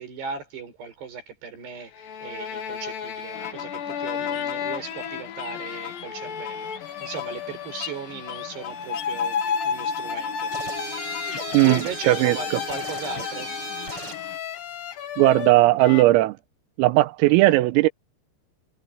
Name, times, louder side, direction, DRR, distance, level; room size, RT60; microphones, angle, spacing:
voice 1, 0.0-6.7 7.0-10.5 11.6-13.6, right 6 dB, 55° right, 7.9 m, -37 dB
sound 1, 1.8-16.0, left 7 dB, 55° left, 3.1 m, -32 dB
sound 2, 3.3-14.4, left 12 dB, 75° left, 2.0 m, -40 dB
sound 3, 10.5-14.3, right 4 dB, 25° right, 7.8 m, -36 dB
voice 2, 12.1-12.4 15.2-16.4 16.8-17.9, right 18 dB, 90° right, 3.6 m, -17 dB
omnidirectional pair, 5.9 m